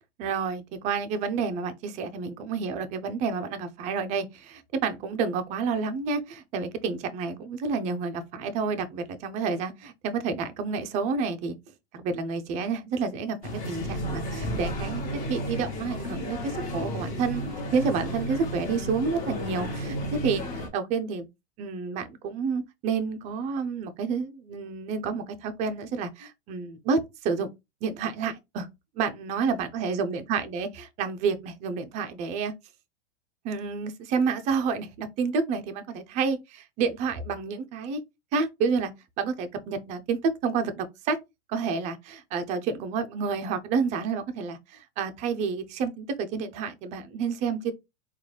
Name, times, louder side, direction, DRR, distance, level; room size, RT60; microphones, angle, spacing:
voice 1, 0.2-11.6 11.9-15.0 15.3-17.4 17.7-20.0 20.2-21.3 21.6-27.5 27.8-28.7 29.0-32.5 33.4-38.0 38.3-38.9 39.2-41.2 41.5-47.7, right 5 dB, 20° right, 0.3 m, -29 dB
sound 1, 13.4-20.7, equal, 25° left, 1.0 m, -33 dB
3.7 x 2.3 x 3.1 m
hypercardioid pair, 135°, 36 cm